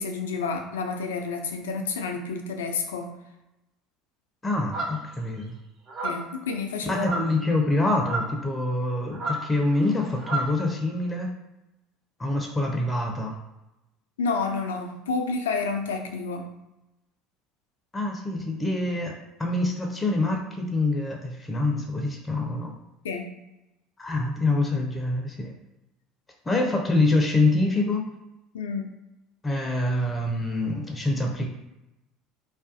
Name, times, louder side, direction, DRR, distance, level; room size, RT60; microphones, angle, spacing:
voice 1, 0.0-3.2 6.0-7.1 14.2-16.5 23.0-23.3 28.5-28.9, left 4 dB, 80° left, 4 dB, 0.3 m, -29 dB
voice 2, 4.4-5.6 6.9-11.3 12.2-13.4 17.9-19.1 19.4-22.7 24.0-25.5 26.5-28.0 29.4-31.5, left 2 dB, 20° left, 1 dB, 0.5 m, -25 dB
sound 1, 4.7-5.2 5.9-6.3 7.0-7.4 8.0-8.4 9.1-10.6, right 2 dB, 50° right, 0.6 m, -31 dB
2.4 x 2.2 x 2.5 m, 0.95 s
hypercardioid pair, 65°, 0 cm